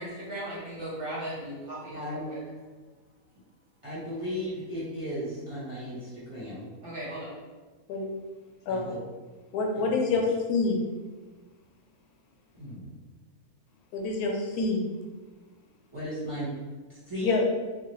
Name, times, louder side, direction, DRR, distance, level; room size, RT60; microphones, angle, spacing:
voice 1, 0.0-2.4 6.8-7.3, right 1 dB, 45° right, -7 dB, 0.8 m, -37 dB
voice 2, 1.9-2.3 3.8-6.7 8.7-9.0 9.7-10.3 12.6-12.9 15.9-16.5 17.1-17.4, equal, 25° right, -11 dB, 0.9 m, -36 dB
voice 3, 9.5-10.9 13.9-14.9 17.2-17.4, left 3 dB, 90° left, 1 dB, 1.1 m, -26 dB
3.0 x 2.3 x 3.0 m, 1.3 s
omnidirectional pair, 1.6 m